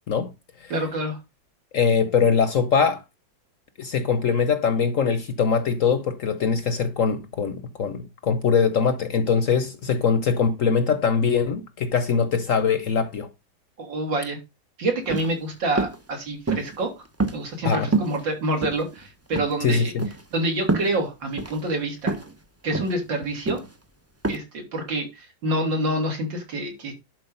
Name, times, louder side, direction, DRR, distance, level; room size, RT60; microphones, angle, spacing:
voice 1, 0.7-1.2 13.8-14.4 14.8-16.9 17.3-19.9 20.3-22.2 22.6-23.6 24.3-26.9, right 1 dB, 80° right, 3.8 m, -27 dB
voice 2, 1.7-3.0 3.8-13.3 17.6-17.9 19.6-20.0, left 6 dB, 55° left, 1.0 m, -22 dB
sound 1, 15.0-15.3 15.8-16.0 16.5-16.8 17.2-17.7 17.9-18.2 18.6-19.1 19.3-19.5 20.0-20.2 20.7-20.9 21.4-21.6 22.1-22.3 22.7-23.0 23.5-23.7 24.2-24.4, right 3 dB, 20° right, 0.3 m, -26 dB
11.0 x 4.8 x 5.4 m
omnidirectional pair, 2.0 m